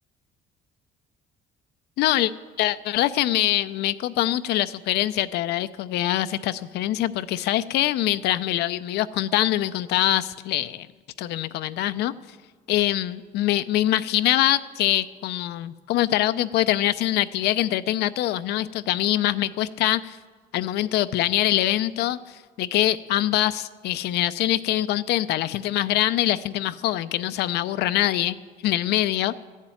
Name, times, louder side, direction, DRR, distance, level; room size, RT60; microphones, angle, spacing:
voice 1, 2.0-2.3 2.6-10.9 11.2-12.1 12.7-20.2 20.5-28.4 28.6-29.4, left 14 dB, 80° left, 13 dB, 0.5 m, -24 dB
13.5 x 7.4 x 9.1 m, 1.4 s
cardioid pair, 110°, 17 cm